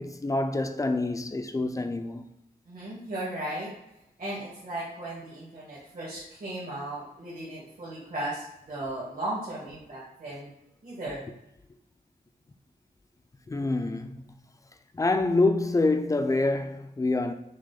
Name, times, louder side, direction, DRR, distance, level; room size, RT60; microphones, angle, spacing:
voice 1, 0.0-2.3 13.5-14.2 14.9-17.3, left 2 dB, 20° left, 0.3 m, -26 dB
voice 2, 2.7-3.7 4.2-10.5 10.8-11.2, right 1 dB, 65° right, 1.6 m, -36 dB
6.2 x 2.2 x 3.9 m
wide cardioid pair, 130°, 16 cm